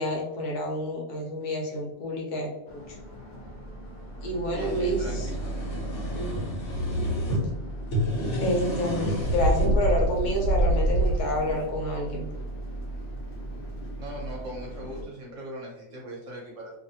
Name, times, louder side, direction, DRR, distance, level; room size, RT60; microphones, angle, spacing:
voice 1, 0.0-3.0 4.2-5.3 6.1-6.5 8.4-12.3, equal, 75° left, 0 dB, 1.2 m, -29 dB
sound 1, 2.7-15.0, right 1 dB, 90° left, 0.4 m, -37 dB
sound 2, 4.3-7.4 7.8-9.7, equal, 50° left, 1.2 m, -30 dB
voice 2, 4.5-5.2 14.0-16.7, equal, 60° right, -3 dB, 1.0 m, -39 dB
Bird, 9.2-11.7, right 1 dB, 90° right, 1.2 m, -24 dB
2.6 x 2.6 x 2.7 m, 0.98 s
omnidirectional pair, 1.8 m